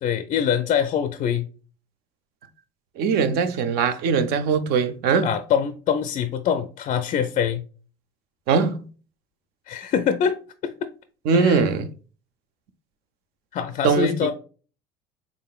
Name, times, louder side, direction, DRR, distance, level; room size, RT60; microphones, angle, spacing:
voice 1, 0.0-1.5 5.2-7.6 9.7-10.4 10.6-10.7 11.3-11.6 13.5-14.3, left 8 dB, 45° left, 0.4 m, -24 dB
voice 2, 3.0-5.3 8.5-8.8 11.3-11.9 13.8-14.1, right 5 dB, 65° right, 0.5 m, -21 dB
3.6 x 3.6 x 2.3 m
supercardioid pair, 90°, 17 cm